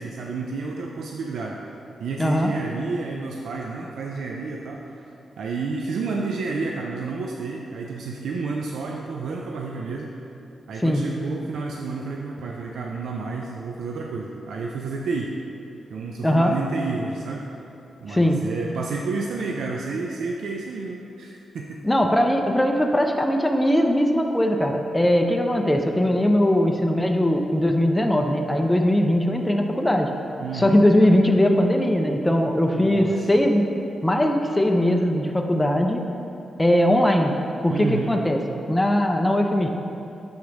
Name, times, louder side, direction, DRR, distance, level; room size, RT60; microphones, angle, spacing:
voice 1, 0.0-1.6 2.0-5.1 5.4-10.1 10.7-15.3 15.9-17.5 18.0-21.8 30.4-30.8 32.7-33.3 37.7-38.1, right 4 dB, 80° right, 0 dB, 0.4 m, -30 dB
voice 2, 2.2-2.5 10.8-11.1 16.2-16.5 18.1-18.4 21.8-30.1 30.5-33.6 34.0-36.0 36.6-37.3 37.6-38.4 38.7-39.7, left 1 dB, 10° left, 2 dB, 0.6 m, -20 dB
7.0 x 3.1 x 5.1 m, 2.8 s
supercardioid pair, 45°, 0 cm